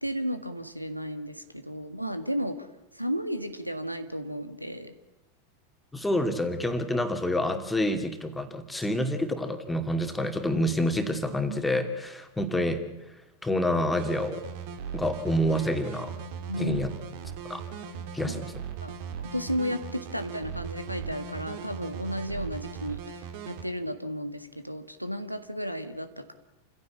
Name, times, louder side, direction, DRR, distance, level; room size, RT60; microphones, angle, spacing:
voice 1, 0.0-2.7 2.9-4.9 16.5-16.8 18.3-18.4 18.8-26.3, equal, 90° right, 10 dB, 1.7 m, -33 dB
voice 2, 5.9-12.8 13.4-14.4 14.9-16.1 16.6-16.9 17.4-17.6 18.1-18.5, left 1 dB, 5° left, 6 dB, 2.6 m, -28 dB
sound 1, 14.0-23.6, right 7 dB, 50° right, 2.9 m, -38 dB
28.5 x 16.5 x 8.5 m, 0.94 s
figure-of-eight pair, 90°, 0 cm